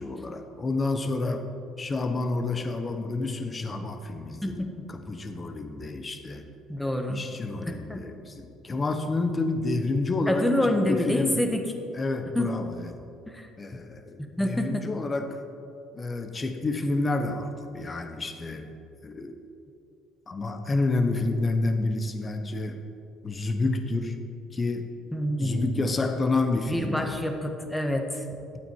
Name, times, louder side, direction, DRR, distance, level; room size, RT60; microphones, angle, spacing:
voice 1, 0.0-1.5 1.8-4.6 4.9-6.5 7.1-11.4 11.9-12.9 13.6-15.4 15.9-18.7 19.0-19.3 20.3-22.8 23.2-24.2 24.5-24.9 25.4-27.2, left 2 dB, 30° left, 6 dB, 1.2 m, -29 dB
voice 2, 4.4-4.9 6.7-7.2 7.6-8.1 10.3-11.6 12.3-12.5 13.3-13.5 14.4-14.9 25.1-25.9 26.7-28.2, left 1 dB, 5° left, 4 dB, 1.5 m, -27 dB
12.0 x 8.6 x 4.7 m, 2.6 s
hypercardioid pair, 65°, 0 cm